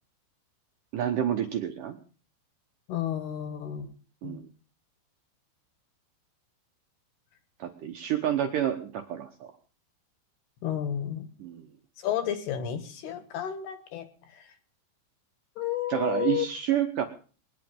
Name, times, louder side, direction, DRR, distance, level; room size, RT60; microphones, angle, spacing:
voice 1, 0.9-2.0 4.2-4.4 7.6-9.5 11.4-11.7 15.9-17.0, right 10 dB, 85° right, 5 dB, 1.8 m, -29 dB
voice 2, 2.9-3.9 4.2-4.4 10.6-11.3 12.0-14.1 14.3-14.4 15.6-16.5, left 10 dB, 65° left, 10 dB, 3.3 m, -31 dB
21.0 x 11.0 x 5.4 m, 0.40 s
omnidirectional pair, 5.5 m